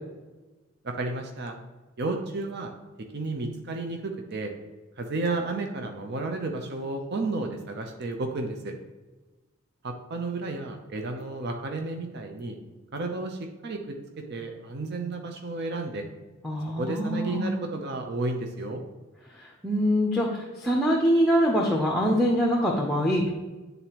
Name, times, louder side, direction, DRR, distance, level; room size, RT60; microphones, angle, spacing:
voice 1, 0.8-1.6 2.0-2.7 3.0-4.5 5.0-8.7 9.8-12.6 12.9-16.1 16.8-18.8, right 2 dB, 50° right, 3 dB, 0.6 m, -32 dB
voice 2, 16.4-17.5 19.4-23.3, equal, ahead, 0 dB, 0.6 m, -24 dB
9.4 x 3.9 x 2.9 m, 1.2 s
head